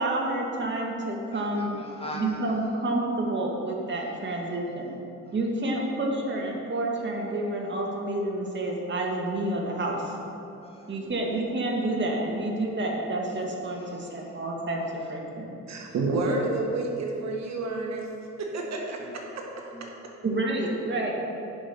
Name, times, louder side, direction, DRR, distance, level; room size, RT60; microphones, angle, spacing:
voice 1, 0.0-1.8 2.1-5.0 5.3-10.1 10.9-15.6 20.2-21.1, right 2 dB, 40° right, -1 dB, 1.8 m, -29 dB
voice 2, 1.3-3.0 4.1-4.9 5.3-5.5 10.6-11.9 12.2-12.3 12.6-12.7 13.7-14.4 14.8-15.1 16.6-16.8 18.9-19.4 19.6-20.1 20.4-20.5, left 1 dB, 20° left, -2 dB, 1.7 m, -45 dB
voice 3, 15.7-18.1 18.4-19.0 19.4-19.5, right 2 dB, 60° right, 0 dB, 1.5 m, -29 dB
10.0 x 5.3 x 5.9 m, 2.8 s
cardioid pair, 90°, 30 cm